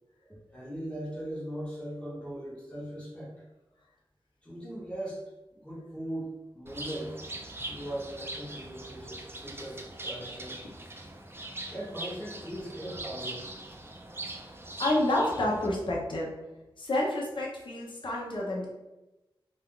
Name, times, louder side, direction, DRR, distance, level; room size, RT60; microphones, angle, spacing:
voice 1, 0.3-3.3 4.4-5.2 5.5-7.1 7.7-10.6 11.7-13.5 14.4-14.5, right 1 dB, 10° left, -6 dB, 1.2 m, -39 dB
Bird, 6.7-15.7, right 2 dB, 25° right, 0.4 m, -41 dB
voice 2, 14.8-16.3 16.8-18.7, left 1 dB, 65° left, -3 dB, 0.7 m, -29 dB
2.5 x 2.3 x 3.6 m, 1.0 s
wide cardioid pair, 75°, 9 cm